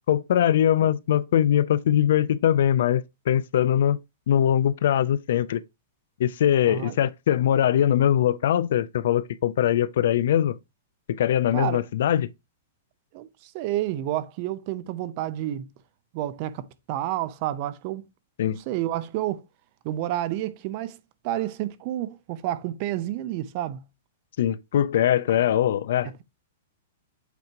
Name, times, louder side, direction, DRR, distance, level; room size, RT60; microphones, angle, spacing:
voice 1, 0.1-4.0 4.3-5.6 6.2-10.6 11.1-12.3 18.4-18.6 24.4-26.1, left 10 dB, 65° left, 0.5 m, -22 dB
voice 2, 13.1-15.7 16.1-18.0 18.7-19.5 19.8-21.0 21.2-23.8, right 13 dB, 35° right, 0.6 m, -30 dB
8.2 x 4.7 x 3.0 m
supercardioid pair, 165°, 0 cm